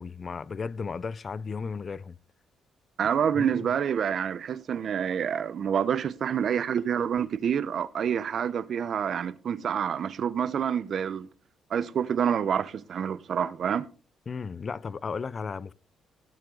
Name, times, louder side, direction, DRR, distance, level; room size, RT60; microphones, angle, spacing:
voice 1, 0.0-2.2 3.4-3.7 14.3-15.7, left 5 dB, 40° left, 0.5 m, -35 dB
voice 2, 3.0-11.3 11.7-13.9, right 8 dB, 60° right, 0.8 m, -27 dB
16.5 x 7.5 x 4.0 m
cardioid pair, 90°, 0 cm